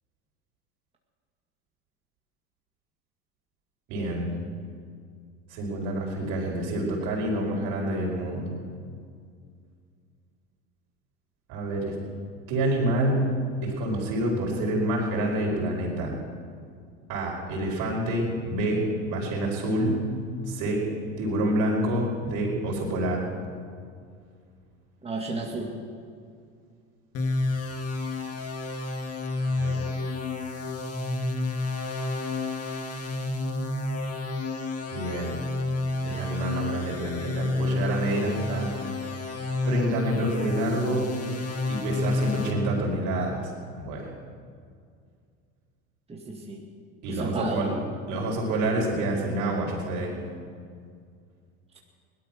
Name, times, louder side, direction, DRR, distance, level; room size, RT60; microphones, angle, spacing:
voice 1, 3.9-4.3 5.5-8.6 11.5-11.9 12.5-13.3 13.6-16.1 17.1-20.0 20.5-20.8 21.2-23.3 29.6-29.9 34.9-35.3 36.0-38.8 39.6-41.1 41.7-43.5 43.8-44.1 47.0-47.7 48.1-50.1, right 1 dB, 65° right, -1 dB, 5.1 m, -27 dB
voice 2, 25.0-25.7 46.1-46.6 47.1-47.7, right 2 dB, 15° right, -1 dB, 2.3 m, -32 dB
sound 1, 27.1-42.5, left 2 dB, 45° left, 2.4 m, -30 dB
18.0 x 12.5 x 6.1 m, 2.2 s
supercardioid pair, 90°, 34 cm